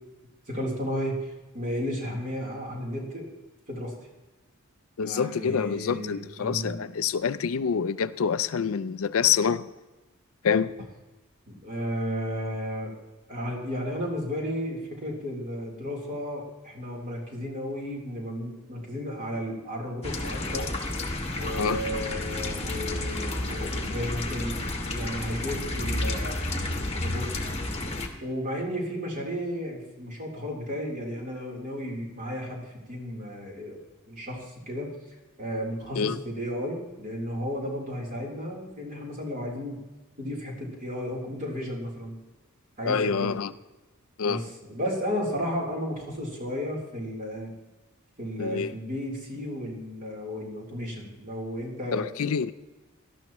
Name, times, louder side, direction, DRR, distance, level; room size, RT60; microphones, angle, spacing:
voice 1, 0.5-3.3 3.7-3.9 5.0-6.8 11.5-12.9 13.3-20.7 21.3-26.4 26.9-27.4 28.2-33.8 34.1-34.9 35.4-39.8 40.2-42.2 42.8-43.4 44.3-47.5 48.2-52.3, equal, 35° right, -2 dB, 3.5 m, -33 dB
voice 2, 5.0-9.7 10.4-10.7 21.6-21.8 36.0-36.2 42.8-43.5 44.2-44.4 48.4-48.7 51.9-52.5, left 6 dB, 70° left, 14 dB, 0.4 m, -26 dB
sound 1, 20.0-28.1, left 2 dB, 25° left, 1.3 m, -31 dB
18.0 x 12.5 x 3.0 m, 1.1 s
head